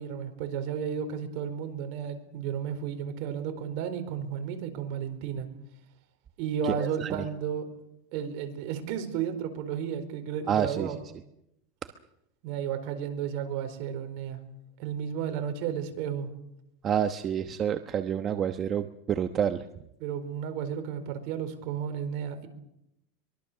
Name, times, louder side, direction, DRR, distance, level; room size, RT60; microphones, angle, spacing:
voice 1, 0.0-5.5 6.4-7.7 8.1-11.0 12.4-14.4 14.8-16.3 20.0-22.5, right 8 dB, 60° right, 7 dB, 4.5 m, -33 dB
voice 2, 6.6-7.2 10.5-10.9 16.8-19.6, right 9 dB, 30° right, 8 dB, 1.1 m, -28 dB
24.0 x 22.0 x 6.9 m, 0.82 s
supercardioid pair, 130°, 0 cm